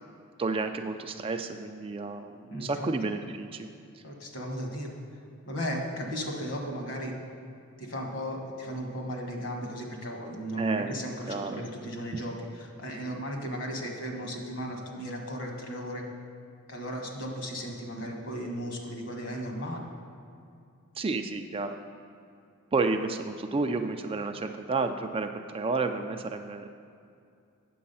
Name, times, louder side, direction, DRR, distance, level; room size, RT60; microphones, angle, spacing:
voice 1, 0.4-3.7 10.6-11.0 11.3-11.6 21.0-21.8 22.7-26.7, right 3 dB, 25° right, 6 dB, 0.4 m, -31 dB
voice 2, 2.5-2.9 4.0-4.9 5.5-7.1 7.8-16.0 16.7-19.9, equal, 60° left, 1 dB, 1.5 m, -35 dB
8.5 x 7.2 x 5.5 m, 2.4 s
head